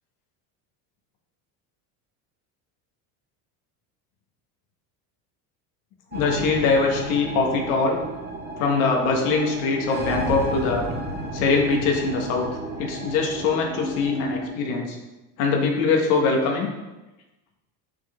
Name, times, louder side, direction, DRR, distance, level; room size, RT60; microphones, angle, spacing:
voice 1, 6.1-8.0 8.6-10.9 11.3-12.5 12.8-15.0 15.4-16.7, left 4 dB, 75° left, 1 dB, 1.6 m, -22 dB
sound 1, 6.1-14.5, right 1 dB, 20° right, 1.5 m, -33 dB
6.7 x 6.0 x 3.7 m, 1.1 s
supercardioid pair, 100°, 48 cm